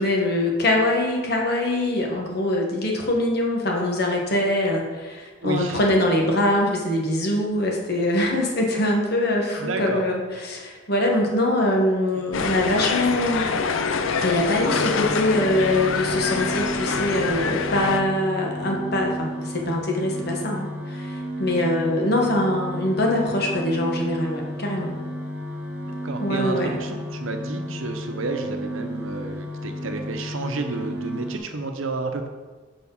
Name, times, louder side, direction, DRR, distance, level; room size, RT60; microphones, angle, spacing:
voice 1, 0.0-13.5 14.2-24.9 26.2-26.8, left 1 dB, 50° left, 0 dB, 1.3 m, -23 dB
voice 2, 5.4-5.8 9.6-10.0 21.6-21.7 25.8-32.3, right 3 dB, 80° right, 6 dB, 0.8 m, -31 dB
sound 1, 12.3-18.0, left 5 dB, 80° left, 0.5 m, -26 dB
sound 2, 14.6-31.4, equal, 10° right, 1.1 m, -33 dB
5.9 x 4.8 x 5.4 m, 1.3 s
head